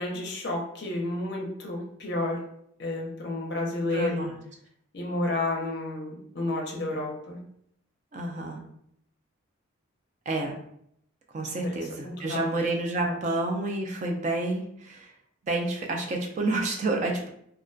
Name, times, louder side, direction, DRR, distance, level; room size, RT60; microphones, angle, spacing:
voice 1, 0.0-2.4 2.8-4.2 4.9-7.4 11.6-12.6 13.0-13.2, left 2 dB, 55° left, 0 dB, 0.5 m, -31 dB
voice 2, 3.9-4.3 8.1-8.6 10.3-10.6 11.3-15.1 15.4-17.3, right 2 dB, 35° right, 1 dB, 0.3 m, -29 dB
2.3 x 2.1 x 2.5 m, 0.71 s
head